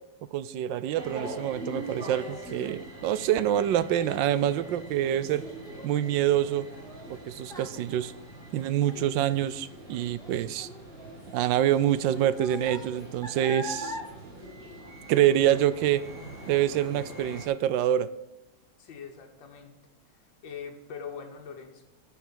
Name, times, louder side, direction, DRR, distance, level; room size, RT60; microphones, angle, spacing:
voice 1, 0.3-5.4 5.8-6.7 7.1-8.1 8.5-10.7 11.3-14.0 15.1-16.0 16.5-18.1, right 11 dB, 80° right, 15 dB, 1.3 m, -26 dB
sound 1, 1.0-17.5, right 1 dB, 40° right, 3.7 m, -43 dB
Child speech kid speaking, 2.8-15.4 15.8-16.2 16.7-16.8, left 1 dB, ahead, 1.7 m, -44 dB
voice 2, 18.8-19.7 20.1-21.8, left 6 dB, 85° left, 3 dB, 1.9 m, -42 dB
10.5 x 5.8 x 7.4 m, 0.99 s
omnidirectional pair, 2.0 m